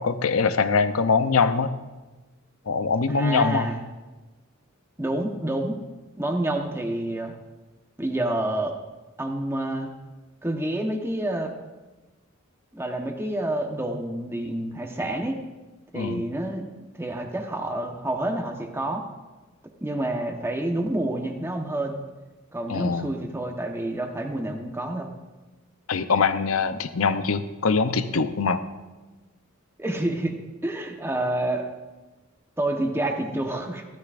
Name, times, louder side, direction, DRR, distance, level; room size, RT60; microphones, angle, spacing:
voice 1, 0.0-1.7 2.7-3.7 15.9-16.3 22.7-23.1 25.9-28.6, left 5 dB, 75° left, 11 dB, 0.7 m, -23 dB
voice 2, 3.1-3.8 5.0-5.8 6.2-7.3 8.0-8.7 9.2-9.9 10.4-11.5 12.7-15.4 15.9-16.6 17.0-19.0 19.8-22.0 22.5-25.1 29.8-30.4 30.6-31.7 32.6-33.8, right 1 dB, 10° right, 3 dB, 1.1 m, -28 dB
15.0 x 13.5 x 2.5 m, 1.2 s
head